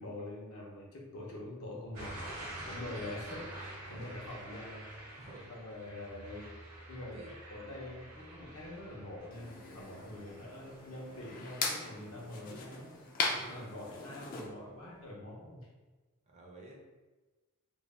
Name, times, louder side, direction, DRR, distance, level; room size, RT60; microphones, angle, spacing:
voice 1, 0.0-2.3 2.6-4.9 5.5-6.5 6.9-7.2 7.5-13.0 13.5-15.7, left 1 dB, 70° left, -3 dB, 0.7 m, -45 dB
sound 1, 1.9-12.8 13.2-13.6, right 1 dB, 85° right, 0.9 m, -48 dB
voice 2, 5.2-5.5 7.1-7.3 9.7-10.2 13.3-13.6 16.3-16.7, right 2 dB, 30° right, -1 dB, 0.4 m, -52 dB
sound 2, 9.3-14.5, left 4 dB, 40° left, 0.3 m, -39 dB
2.5 x 2.1 x 3.2 m, 1.2 s
head